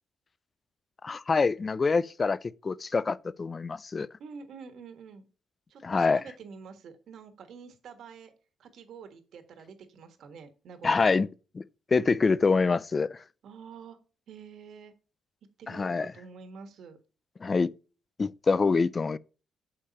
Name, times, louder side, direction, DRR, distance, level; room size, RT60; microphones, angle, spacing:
voice 1, 1.0-4.1 5.8-6.2 10.8-11.3 11.5-11.6 11.9-13.2 15.7-16.1 17.4-17.7 18.2-19.2, left 4 dB, 30° left, 0.4 m, -25 dB
voice 2, 4.2-5.3 5.7-8.3 8.6-11.1 13.4-14.0 14.3-14.9 15.6-17.0, right 6 dB, 65° right, 1.5 m, -47 dB
6.6 x 5.5 x 4.2 m
cardioid pair, 90°, 0 cm